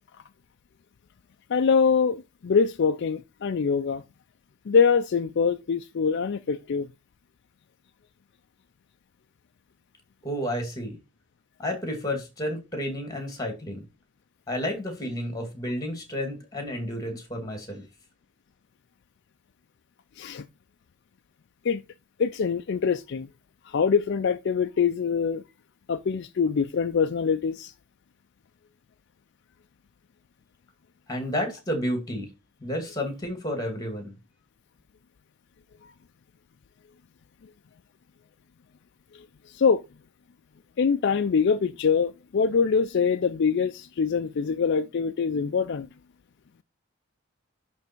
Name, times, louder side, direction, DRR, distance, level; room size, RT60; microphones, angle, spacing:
voice 1, 1.5-4.0 4.7-6.9 20.2-20.5 21.6-21.8 22.2-23.3 23.6-25.4 25.9-27.7 39.1-39.8 40.8-45.9, left 6 dB, 55° left, 0.4 m, -24 dB
voice 2, 10.2-11.0 11.6-13.9 14.5-17.8 31.1-32.3 32.6-34.1, equal, 20° left, 2.2 m, -31 dB
10.5 x 3.5 x 4.4 m
head